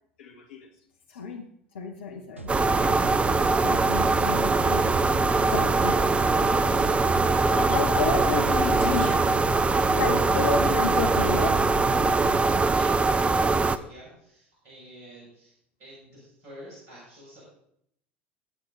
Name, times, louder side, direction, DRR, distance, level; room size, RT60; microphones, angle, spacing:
voice 1, 0.2-0.7 1.1-1.5 1.7-2.5 2.8-3.3 3.5-4.9 5.5-6.0 6.6-6.9 7.5-9.3 9.5-11.7, left 5 dB, 65° left, 3 dB, 1.4 m, -31 dB
sound 1, 2.4-12.6, equal, 90° right, 0.7 m, -39 dB
sound 2, 2.5-13.8, right 3 dB, 15° right, 0.6 m, -22 dB
voice 2, 12.6-17.4, equal, 45° right, -6 dB, 7.2 m, -49 dB
22.5 x 8.2 x 4.0 m, 0.73 s
figure-of-eight pair, 75°, 7 cm